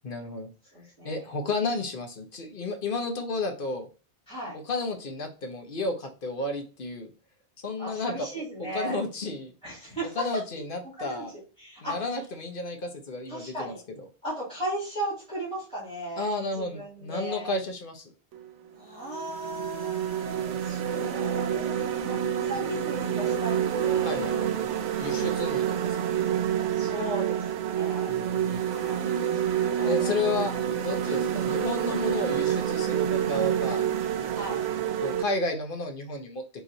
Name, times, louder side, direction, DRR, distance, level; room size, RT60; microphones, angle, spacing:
voice 1, 0.0-0.5 1.0-3.9 4.7-7.1 7.6-9.5 10.2-11.3 11.8-13.7 16.2-18.1 24.0-24.3 25.0-26.1 28.1-28.6 29.9-33.9 35.0-36.4, left 2 dB, 55° left, 4 dB, 0.9 m, -32 dB
voice 2, 0.7-1.2 4.3-4.6 7.8-9.0 9.6-10.2 11.0-11.2 11.6-12.0 13.3-13.8 14.2-16.3 16.5-17.5 18.7-24.3 26.7-28.1 28.5-29.1 29.4-30.6 31.1-31.2 31.5-31.7 34.3-34.6, right 1 dB, 5° left, -7 dB, 2.2 m, -36 dB
sound 1, 18.3-18.5 19.1-35.2, right 9 dB, 80° right, 0.9 m, -28 dB
4.0 x 3.0 x 3.9 m, 0.35 s
omnidirectional pair, 1.2 m